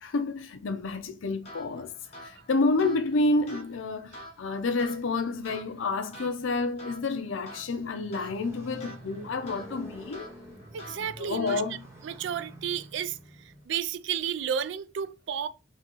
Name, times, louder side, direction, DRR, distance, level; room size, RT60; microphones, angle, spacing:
voice 1, 0.0-1.9 2.2-10.3 11.0-11.8, left 3 dB, 80° left, 0.5 m, -29 dB
Motorcycle, 1.2-13.7, right 1 dB, 15° right, 0.7 m, -51 dB
sound 1, 1.4-12.1, equal, 35° left, 1.0 m, -48 dB
voice 2, 10.7-11.6 12.0-13.2 13.7-15.5, right 8 dB, 65° right, 0.3 m, -32 dB
3.7 x 2.8 x 2.9 m
head